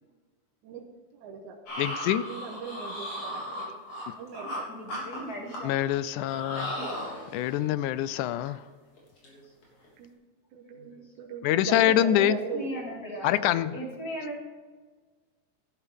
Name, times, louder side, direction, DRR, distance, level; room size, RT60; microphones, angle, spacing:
voice 1, 1.1-1.6 2.3-3.4 4.2-4.7 10.0-10.1 10.5-12.7, right 5 dB, 70° right, 0 dB, 2.4 m, -38 dB
sound 1, 1.7-4.6 4.9-5.9 6.2-7.6 8.0-8.2 8.4-8.7 9.0-9.3 9.6-9.8, equal, 55° left, 4.6 m, -36 dB
voice 2, 1.8-2.2 5.6-6.7 7.3-8.6 11.4-12.4 13.2-13.7, left 12 dB, 80° left, 15 dB, 1.9 m, -25 dB
voice 3, 3.2-3.8 4.7-5.7 6.5-6.9 9.2-9.8 10.7-11.1 12.2-14.4, equal, 30° left, -1 dB, 2.7 m, -39 dB
12.5 x 12.0 x 3.6 m, 1.4 s
omnidirectional pair, 3.7 m